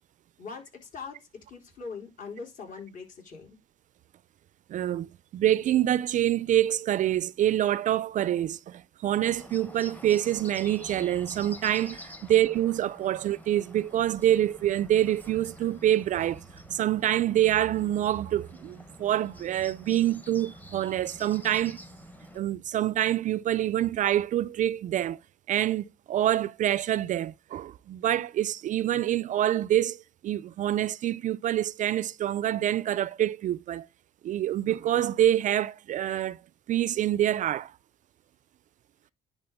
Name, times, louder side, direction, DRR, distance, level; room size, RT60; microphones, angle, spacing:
voice 1, 0.4-3.6 12.3-12.4, left 5 dB, 50° left, 4.0 m, -42 dB
voice 2, 4.7-16.4 16.7-21.8 22.3-25.2 25.5-33.9 34.2-36.4 36.7-37.7, right 12 dB, 50° right, 0.4 m, -26 dB
Bird, 9.2-22.4, left 1 dB, 10° left, 1.0 m, -48 dB
10.5 x 4.3 x 3.5 m
cardioid pair, 110°, 17 cm